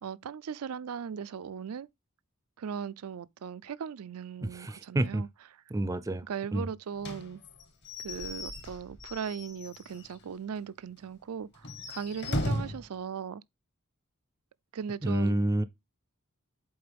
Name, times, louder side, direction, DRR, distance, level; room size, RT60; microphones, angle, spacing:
voice 1, 0.0-1.9 2.6-5.3 6.3-7.4 8.0-13.4 14.7-15.4, right 7 dB, 75° right, 0.4 m, -38 dB
voice 2, 4.4-5.3 5.7-6.3 6.5-6.7 15.0-15.6, right 1 dB, 15° right, 0.4 m, -29 dB
Slam / Squeak / Wood, 7.0-10.2 10.6-10.7 11.0-11.1 11.6-12.9, left 1 dB, 50° left, 1.4 m, -36 dB
7.8 x 4.4 x 3.3 m
head